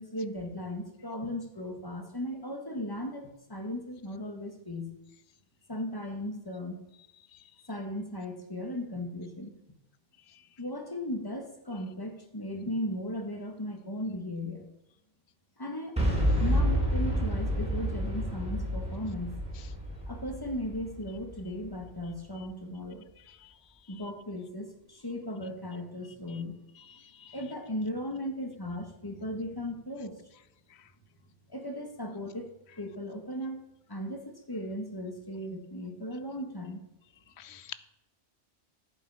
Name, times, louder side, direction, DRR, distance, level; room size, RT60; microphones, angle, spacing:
voice 1, 0.0-3.2 3.5-4.9 5.7-6.8 7.7-9.5 10.6-14.6 15.6-15.9 16.4-19.3 20.1-23.1 23.9-26.6 27.3-30.2 31.5-32.5 32.8-33.6 33.9-36.8, left 1 dB, 20° left, 3 dB, 1.6 m, -37 dB
Boom, 16.0-21.8, equal, 5° right, 3.0 m, -29 dB
voice 2, 26.9-27.3 37.4-37.7, left 10 dB, 70° left, 15 dB, 0.8 m, -46 dB
10.5 x 8.5 x 4.9 m, 0.88 s
omnidirectional pair, 1.2 m